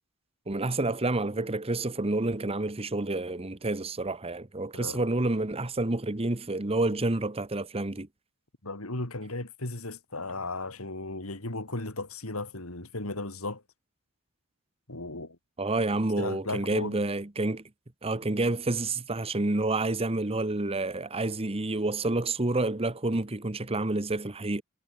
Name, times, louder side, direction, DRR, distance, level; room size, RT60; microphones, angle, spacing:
voice 1, 0.5-8.1 15.6-17.6 18.0-24.6, right 2 dB, 25° right, 1.1 m, -29 dB
voice 2, 4.7-5.1 8.6-13.6 14.9-15.4 16.2-17.0, left 2 dB, 70° left, 3.3 m, -36 dB
head